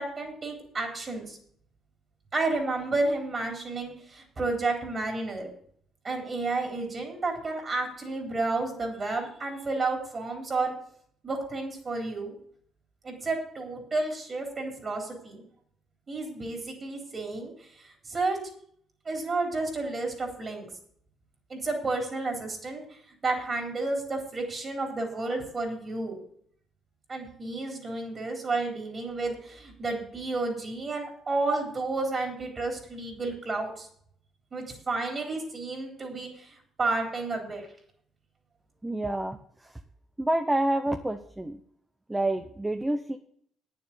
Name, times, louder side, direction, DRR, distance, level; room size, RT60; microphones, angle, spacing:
voice 1, 0.0-1.4 2.3-5.5 6.0-10.7 11.2-12.3 13.0-15.4 16.1-17.5 18.1-18.4 19.1-20.7 21.5-22.8 23.2-26.1 27.1-33.9 34.5-37.7, right 3 dB, 35° right, 1 dB, 3.5 m, -31 dB
voice 2, 38.8-39.4 40.2-41.6 42.1-43.2, right 1 dB, 10° right, 7 dB, 0.8 m, -28 dB
9.4 x 7.3 x 8.4 m, 0.64 s
cardioid pair, 100°, 0 cm